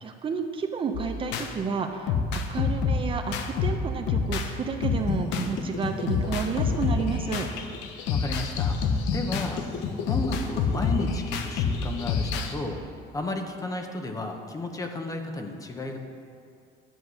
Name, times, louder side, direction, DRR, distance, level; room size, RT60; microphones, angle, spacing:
voice 1, 0.0-2.1 2.5-7.5, right 5 dB, 30° right, 5 dB, 0.6 m, -31 dB
sound 1, 0.9-1.5 2.1-4.5 4.8-12.5, left 5 dB, 85° left, 1.0 m, -27 dB
voice 2, 8.1-9.6 10.1-12.8 13.1-16.0, left 2 dB, 20° left, 4 dB, 0.9 m, -33 dB
11.0 x 7.8 x 6.3 m, 2.4 s
cardioid pair, 155°, 18 cm